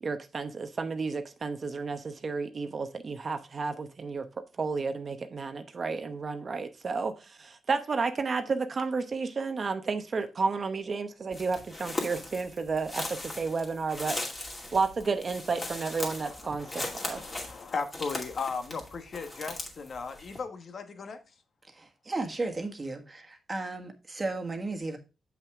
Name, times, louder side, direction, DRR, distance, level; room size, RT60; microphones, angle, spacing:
voice 1, 0.0-4.3 4.6-14.2 14.7-17.2, right 4 dB, 45° right, 0.8 m, -32 dB
sound 1, 11.3-20.4, left 2 dB, 25° left, 2.4 m, -39 dB
voice 2, 16.2-21.2, left 5 dB, 55° left, 1.2 m, -37 dB
voice 3, 21.7-25.0, right 2 dB, 25° right, 1.5 m, -34 dB
7.5 x 5.9 x 3.5 m
cardioid pair, 105°, 0 cm